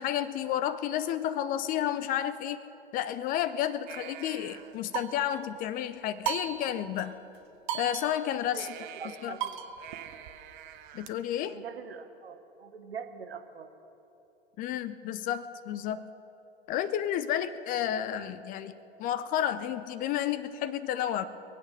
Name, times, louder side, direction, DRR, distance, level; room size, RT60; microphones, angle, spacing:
voice 1, 0.0-2.6 2.9-7.1 7.7-8.7 9.2-9.4 10.9-11.6 14.6-16.0 16.7-18.7 19.0-21.2, left 10 dB, 25° left, 14 dB, 0.5 m, -31 dB
sound 1, 3.9-5.5 6.2-7.1 7.3-7.4 7.7-11.1, right 9 dB, 50° right, 0.9 m, -38 dB
voice 2, 8.5-9.7 11.5-13.7, right 6 dB, 75° right, 8 dB, 1.2 m, -43 dB
23.0 x 8.5 x 6.4 m, 3.0 s
figure-of-eight pair, 95°, 31 cm